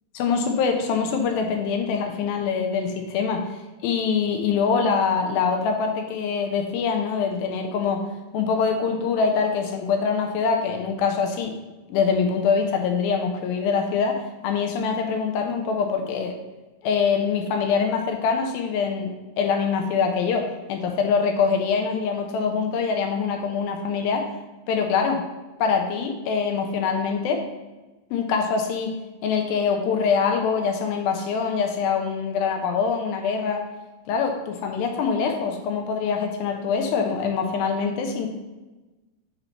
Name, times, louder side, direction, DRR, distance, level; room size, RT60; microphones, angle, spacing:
voice 1, 0.1-3.4 3.8-8.0 8.3-11.5 11.9-16.3 16.8-19.1 19.4-24.2 24.7-25.2 25.6-27.4 28.1-28.9 29.2-33.6 34.1-38.3, left 5 dB, 85° left, 3 dB, 2.4 m, -24 dB
5.7 x 4.0 x 4.4 m, 1.1 s
omnidirectional pair, 4.2 m